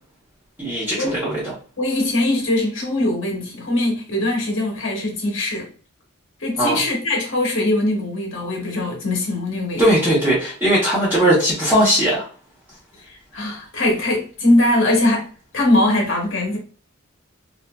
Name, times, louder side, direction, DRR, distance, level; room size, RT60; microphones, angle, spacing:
voice 1, 0.6-1.5 6.6-6.8 9.8-12.2, equal, 10° right, 0.8 m, -18 dB
voice 2, 1.8-5.7 6.4-10.0 13.0-16.6, left 1 dB, 65° left, 0.9 m, -21 dB
2.6 x 2.4 x 2.2 m
head